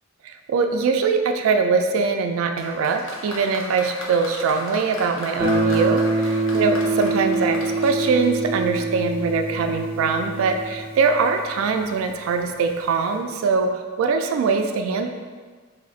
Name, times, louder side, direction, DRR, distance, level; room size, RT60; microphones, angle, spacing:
voice 1, 0.2-15.1, right 4 dB, 85° right, 6 dB, 0.3 m, -22 dB
Applause, 2.6-9.0 9.9-10.0, left 2 dB, 65° left, 0.7 m, -37 dB
Guitar, 5.4-12.1, right 2 dB, 10° right, 0.6 m, -25 dB
4.0 x 2.4 x 3.8 m, 1.5 s
head